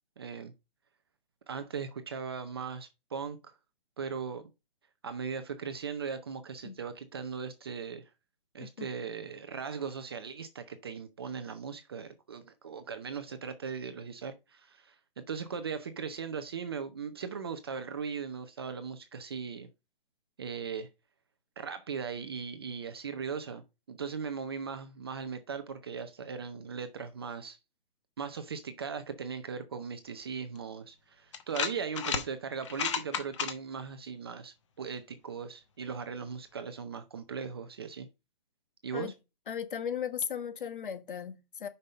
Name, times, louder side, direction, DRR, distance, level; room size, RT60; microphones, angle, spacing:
voice 1, 0.2-0.5 1.5-3.4 4.0-4.4 5.0-8.1 8.5-19.7 20.4-20.9 21.6-27.6 28.2-38.1 38.8-39.1, right 6 dB, 25° right, 0.5 m, -38 dB
voice 2, 8.6-8.9 38.9-39.1 39.5-41.7, left 8 dB, 60° left, 1.4 m, -36 dB
sound 1, 30.6-30.7 31.3-32.3 32.6-33.5, left 7 dB, 30° left, 0.9 m, -32 dB
5.5 x 5.3 x 5.1 m
hypercardioid pair, 160°, 30 cm